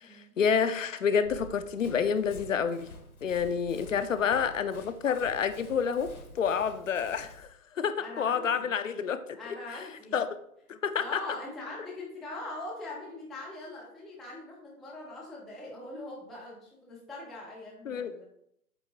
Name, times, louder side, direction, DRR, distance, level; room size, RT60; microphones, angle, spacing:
voice 1, 0.0-2.9 3.2-9.4 10.1-10.3 10.7-11.2 17.9-18.1, left 7 dB, 60° left, 11 dB, 0.6 m, -29 dB
Run, 1.2-7.5, left 2 dB, 80° left, 1.3 m, -49 dB
voice 2, 4.2-4.5 8.0-8.7 9.3-10.2 11.0-18.2, left 2 dB, ahead, -4 dB, 0.3 m, -42 dB
8.2 x 3.4 x 3.5 m, 0.73 s
figure-of-eight pair, 130°, 44 cm